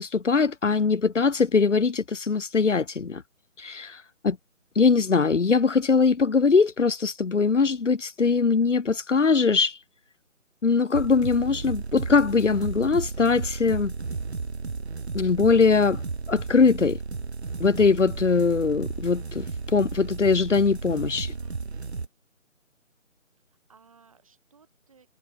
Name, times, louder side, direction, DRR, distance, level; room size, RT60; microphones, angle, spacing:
voice 1, 0.0-3.2 3.6-4.4 4.8-9.8 10.6-13.9 15.1-16.0 16.3-17.0 17.6-21.3, left 4 dB, 60° left, 1.0 m, -22 dB
sound 1, 10.9-22.1, right 4 dB, 50° right, 1.0 m, -33 dB
voice 2, 21.1-21.7 23.5-25.1, right 5 dB, 25° right, 6.3 m, -58 dB
figure-of-eight pair, 175°, 41 cm